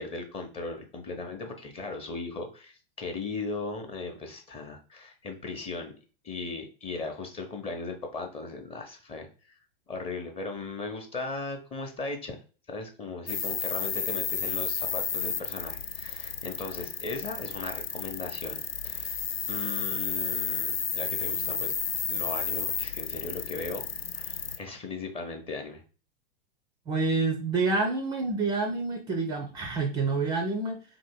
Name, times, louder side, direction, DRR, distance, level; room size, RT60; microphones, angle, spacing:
voice 1, 0.0-5.9 6.2-9.6 9.9-12.4 12.7-19.2 19.5-21.7 22.1-23.9 24.1-25.8 29.6-29.7, left 3 dB, 20° left, 4 dB, 0.8 m, -37 dB
sound 1, 13.3-24.6, left 6 dB, 90° left, 0.5 m, -32 dB
voice 2, 26.9-30.8, right 3 dB, 15° right, 5 dB, 0.4 m, -28 dB
3.0 x 2.7 x 4.4 m, 0.37 s
figure-of-eight pair, 95°, 29 cm